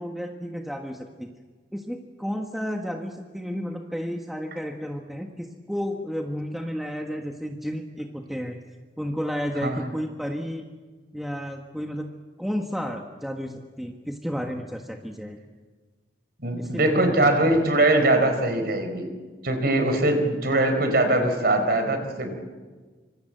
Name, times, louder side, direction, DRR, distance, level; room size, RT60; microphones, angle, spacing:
voice 1, 0.0-1.3 1.7-8.6 9.0-10.7 11.1-12.1 12.4-15.4 16.6-17.1, equal, ahead, 2 dB, 1.5 m, -32 dB
voice 2, 16.4-19.1 19.4-22.3, right 2 dB, 60° right, 7 dB, 4.4 m, -22 dB
26.0 x 25.5 x 7.9 m, 1.4 s
head